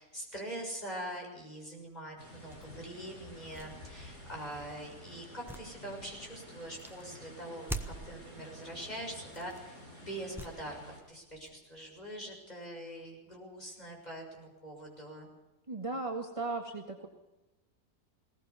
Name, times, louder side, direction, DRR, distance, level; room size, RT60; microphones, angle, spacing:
voice 1, 0.0-10.8 11.1-15.3, right 1 dB, 25° left, 0 dB, 6.6 m, -43 dB
sound 1, 2.2-11.0, equal, 55° left, 6.6 m, -51 dB
sound 2, 2.5-2.7 3.3-4.7 5.2-6.3 6.8-7.1 7.6-8.2 9.2-9.7 10.3-10.9 11.2-12.5, right 1 dB, ahead, 1.0 m, -44 dB
voice 2, 15.7-17.1, right 3 dB, 20° right, 2 dB, 1.8 m, -36 dB
20.5 x 19.0 x 7.1 m, 1.0 s
omnidirectional pair, 1.8 m